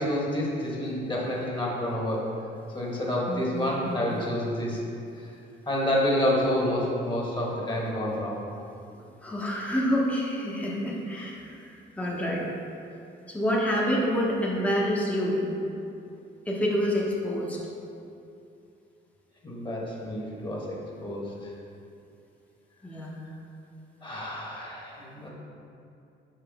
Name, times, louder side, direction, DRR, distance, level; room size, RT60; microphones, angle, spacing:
voice 1, 0.0-2.3 2.7-4.8 5.7-8.4 19.4-21.3 24.0-25.3, left 1 dB, 25° left, -4 dB, 1.4 m, -28 dB
voice 2, 3.3-4.1 8.9-12.5 13.3-15.5 16.5-17.6 22.8-23.2, equal, 5° left, -4 dB, 0.9 m, -28 dB
5.7 x 4.7 x 3.5 m, 2.6 s
cardioid pair, 90°, 20 cm